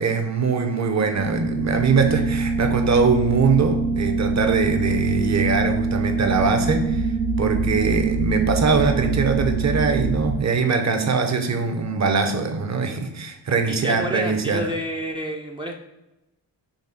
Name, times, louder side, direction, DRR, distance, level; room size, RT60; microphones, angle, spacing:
voice 1, 0.0-14.7, right 4 dB, 40° right, 5 dB, 0.8 m, -22 dB
sound 1, 1.1-10.4, right 3 dB, 85° right, 0.7 m, -24 dB
voice 2, 13.7-15.8, right 1 dB, 10° right, 0 dB, 0.4 m, -29 dB
4.1 x 2.7 x 3.9 m, 0.95 s
supercardioid pair, 45°, 45 cm